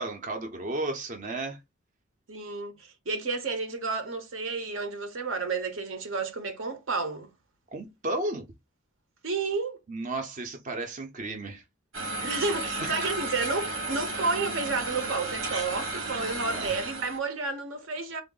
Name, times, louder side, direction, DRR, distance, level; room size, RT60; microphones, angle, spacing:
voice 1, 0.0-1.6 7.7-8.5 9.9-11.6 12.8-13.0 16.5-16.7, right 2 dB, 40° right, 0.6 m, -33 dB
voice 2, 2.3-7.3 9.2-9.8 12.2-18.2, right 4 dB, 70° right, 0.8 m, -31 dB
sound 1, 11.9-17.2, right 2 dB, 85° right, 1.2 m, -33 dB
3.6 x 2.0 x 3.8 m
head